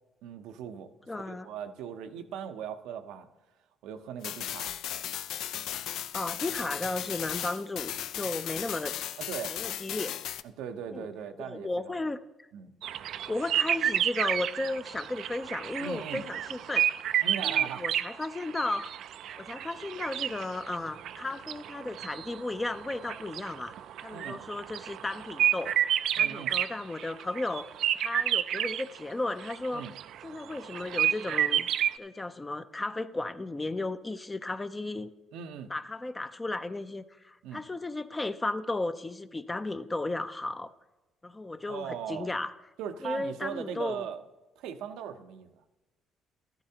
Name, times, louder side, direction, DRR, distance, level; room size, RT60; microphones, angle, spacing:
voice 1, 0.2-3.3 3.8-4.7 9.2-9.6 10.6-12.1 12.5-12.7 15.8-16.2 17.2-17.9 24.1-24.4 26.2-26.5 29.7-29.9 35.3-35.7 37.4-37.6 41.7-42.3 42.8-44.2 44.6-45.6, right 8 dB, 90° right, 8 dB, 0.7 m, -39 dB
voice 2, 1.1-1.5 6.1-8.9 9.4-10.2 10.9-11.1 11.4-12.2 13.3-16.9 17.4-18.9 19.4-23.7 24.0-25.8 26.2-27.7 28.0-29.8 30.2-31.7 32.0-35.1 35.7-40.7 41.2-42.5 43.0-44.1, left 2 dB, 15° left, 10 dB, 0.4 m, -34 dB
sound 1, 4.2-10.4, left 11 dB, 75° left, 0.4 m, -36 dB
sound 2, 12.8-29.0 29.4-31.9, right 11 dB, 70° right, 0.3 m, -30 dB
13.0 x 12.0 x 2.8 m, 1.1 s
cardioid pair, 110°, 0 cm